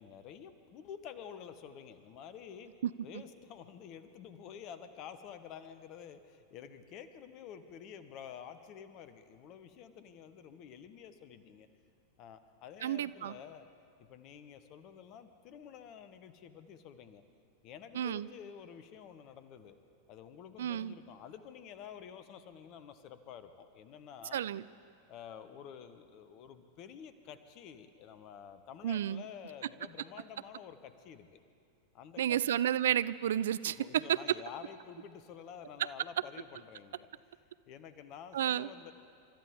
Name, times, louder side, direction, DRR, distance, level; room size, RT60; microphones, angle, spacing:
voice 1, 0.0-2.7 3.0-11.7 12.2-13.7 14.0-17.2 17.6-19.8 20.1-24.4 25.1-31.4 31.9-32.4 33.7-37.1 37.7-38.9, left 8 dB, 40° left, 11 dB, 1.0 m, -50 dB
voice 2, 12.8-13.3 17.9-18.3 20.6-20.9 24.3-24.6 28.8-29.2 32.2-34.2 38.3-38.7, right 11 dB, 60° right, 17 dB, 0.3 m, -31 dB
29.5 x 13.5 x 3.7 m, 2.4 s
figure-of-eight pair, 90°, 0 cm